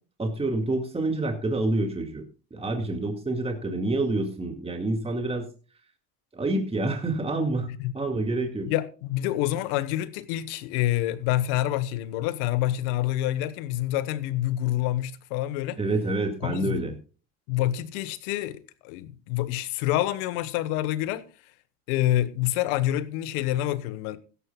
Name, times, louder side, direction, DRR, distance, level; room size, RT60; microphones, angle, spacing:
voice 1, 0.2-2.2 2.5-5.5 6.3-7.7 7.9-8.7 15.8-16.9, right 2 dB, 15° right, 2.1 m, -27 dB
voice 2, 8.7-15.8 16.4-16.8 17.5-21.2 21.9-24.2, left 14 dB, 85° left, 1.3 m, -27 dB
16.0 x 13.0 x 2.3 m
supercardioid pair, 105°, 43 cm